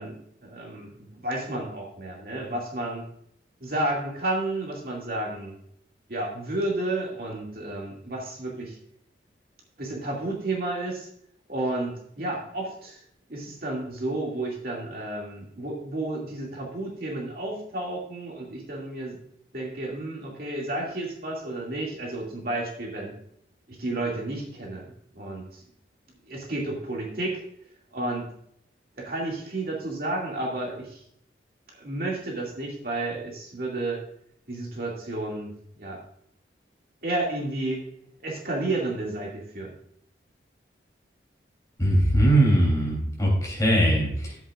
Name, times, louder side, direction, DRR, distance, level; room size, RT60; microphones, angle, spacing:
voice 1, 0.0-3.1 3.6-5.6 6.1-8.8 9.8-11.1 11.5-13.0 13.3-19.2 19.5-23.2 23.7-24.9 25.1-25.6 26.3-27.4 27.9-28.3 29.0-31.0 31.7-34.0 34.5-35.5 35.8-36.0 37.0-37.8 38.2-39.7, right 2 dB, 50° right, -2 dB, 2.4 m, -31 dB
voice 2, 41.8-44.4, right 1 dB, 20° left, -3 dB, 3.3 m, -21 dB
12.5 x 8.2 x 2.5 m, 0.68 s
head